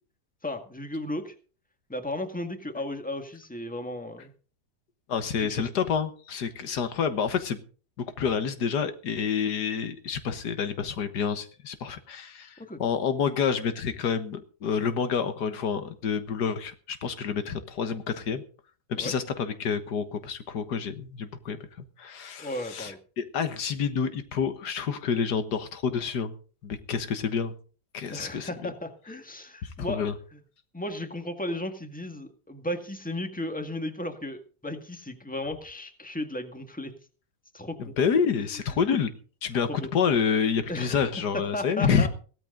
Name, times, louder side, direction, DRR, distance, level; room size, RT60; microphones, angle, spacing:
voice 1, 0.4-1.3 1.9-4.3 5.3-5.7 12.6-12.8 19.0-19.1 22.4-23.0 28.1-30.0 30.3-30.4 30.7-36.9 37.5-37.9 38.4-38.6 39.7-39.9 40.7-41.0 41.3-42.1, left 1 dB, 5° left, 6 dB, 1.8 m, -35 dB
voice 2, 5.1-7.6 8.0-18.4 18.9-26.3 26.6-27.5 27.9-28.7 29.6-30.1 37.8-39.1 39.4-42.1, left 6 dB, 90° left, 10 dB, 1.9 m, -28 dB
16.5 x 13.5 x 3.9 m, 0.39 s
omnidirectional pair, 1.7 m